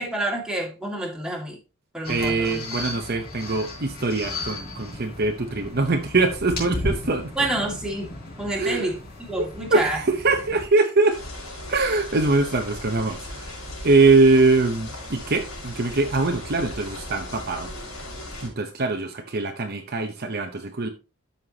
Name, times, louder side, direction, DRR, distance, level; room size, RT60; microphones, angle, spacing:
voice 1, 0.0-1.6 1.9-2.6 7.4-10.0, right 1 dB, 5° right, 2.1 m, -28 dB
sound 1, 2.0-10.7, left 2 dB, 45° left, 3.9 m, -35 dB
voice 2, 2.1-7.3 8.5-8.9 9.4-11.2 11.7-13.5 13.8-17.7 18.4-20.9, right 3 dB, 45° right, 0.8 m, -22 dB
sound 2, 11.1-18.5, left 1 dB, 70° left, 4.8 m, -37 dB
12.5 x 5.8 x 2.9 m
head